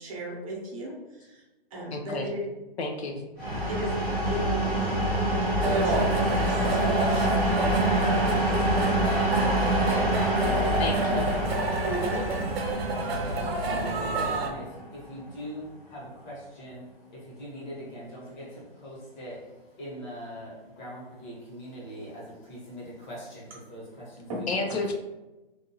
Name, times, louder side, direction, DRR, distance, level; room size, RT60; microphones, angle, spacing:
voice 1, 0.0-1.4 1.7-2.4 3.7-5.2 5.7-9.3 11.8-12.5 24.3-24.6, equal, 35° right, -3 dB, 0.7 m, -37 dB
voice 2, 1.9-2.3 2.8-3.2 10.8-11.3 24.5-24.9, left 3 dB, 85° left, 3 dB, 0.6 m, -31 dB
sound 1, 3.4-15.0, right 1 dB, 5° right, 0.4 m, -26 dB
sound 2, 5.6-14.5, right 2 dB, 70° right, 0.6 m, -29 dB
voice 3, 13.5-24.8, equal, 45° left, -5 dB, 1.3 m, -42 dB
2.6 x 2.3 x 2.8 m, 1.1 s
hypercardioid pair, 155°, 31 cm